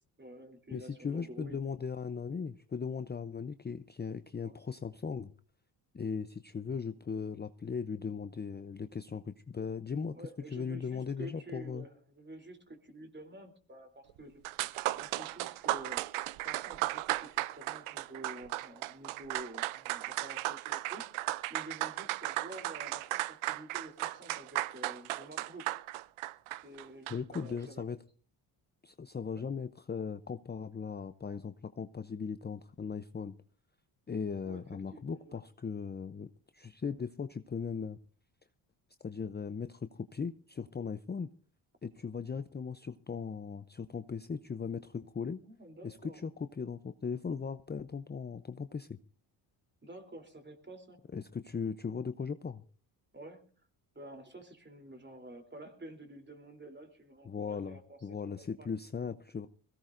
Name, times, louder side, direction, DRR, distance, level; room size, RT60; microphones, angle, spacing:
voice 1, 0.2-1.6 4.4-4.6 10.1-14.4 14.9-16.1 16.4-25.6 26.6-27.8 29.3-29.4 34.4-35.4 45.4-46.3 49.8-51.0 53.1-53.4 53.9-58.7, right 1 dB, 20° right, 6 dB, 3.3 m, -49 dB
voice 2, 0.7-5.3 5.9-10.2 10.5-11.8 27.1-28.0 28.8-33.3 34.1-38.0 39.0-41.3 41.8-45.4 45.8-49.0 51.1-52.6 57.3-59.5, left 5 dB, 20° left, 11 dB, 0.6 m, -38 dB
sound 1, 14.2-14.3 14.5-27.4, right 17 dB, 90° right, 0.6 m, -36 dB
21.5 x 17.0 x 2.6 m, 0.40 s
supercardioid pair, 65°, 48 cm